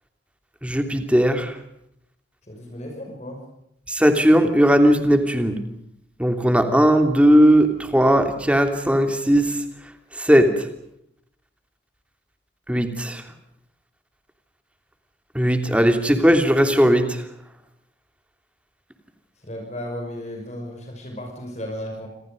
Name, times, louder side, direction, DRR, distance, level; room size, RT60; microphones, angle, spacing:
voice 1, 0.6-1.5 3.9-5.6 6.2-7.7 7.9-9.5 10.2-10.5 12.7-13.2 15.3-17.1, equal, 5° right, 6 dB, 3.0 m, -17 dB
voice 2, 2.5-3.4 19.4-22.1, equal, 40° left, 2 dB, 5.9 m, -34 dB
27.0 x 27.0 x 5.3 m, 0.75 s
head